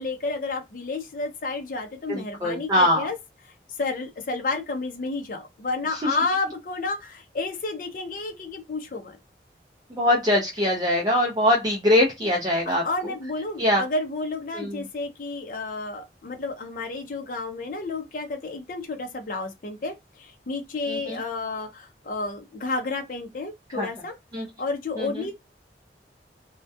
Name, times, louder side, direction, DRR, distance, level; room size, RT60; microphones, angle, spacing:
voice 1, 0.0-3.2 3.8-9.2 12.7-24.2 24.6-25.3, left 3 dB, 50° left, 0.5 m, -31 dB
voice 2, 2.1-3.1 6.0-6.1 9.9-12.8 13.6-13.8 14.5-14.8 20.9-21.2 23.7-23.9 24.3-24.5 25.0-25.2, left 1 dB, 25° right, 0.5 m, -22 dB
2.2 x 2.1 x 2.6 m
head